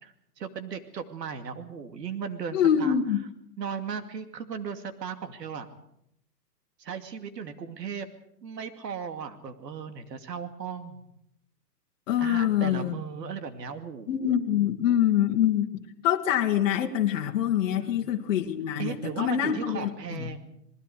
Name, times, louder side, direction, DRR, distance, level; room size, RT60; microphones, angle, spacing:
voice 1, 0.0-3.0 3.6-5.7 6.8-8.1 8.4-11.1 12.2-14.3 17.8-18.1 18.8-20.5, right 6 dB, 80° right, 2.6 m, -37 dB
voice 2, 2.5-3.2 12.1-13.0 14.1-15.7 16.0-20.3, left 10 dB, 50° left, 2.0 m, -25 dB
28.5 x 20.5 x 5.0 m
hypercardioid pair, 145°, 49 cm